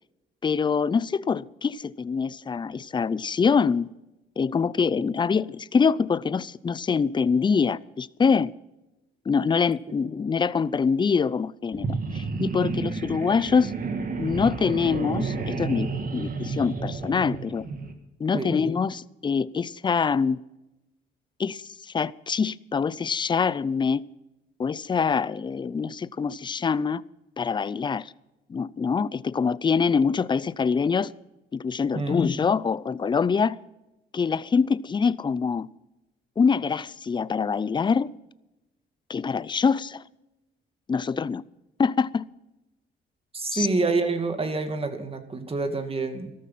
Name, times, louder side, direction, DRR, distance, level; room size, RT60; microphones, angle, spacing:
voice 1, 0.4-3.9 4.4-8.5 9.3-13.7 14.2-15.9 16.1-17.7 18.2-20.4 21.4-21.6 21.9-24.0 24.6-27.0 27.4-28.1 28.5-31.1 31.5-33.6 34.1-35.7 36.4-38.1 39.1-40.0 40.9-41.4 41.8-42.2 43.5-43.7, left 5 dB, 25° left, 0.5 m, -24 dB
sound 1, 11.7-17.9, right 4 dB, 45° right, 2.1 m, -31 dB
voice 2, 31.9-32.2 43.3-46.3, right 3 dB, 30° right, 2.2 m, -27 dB
14.0 x 12.5 x 5.7 m
cardioid pair, 90°, 20 cm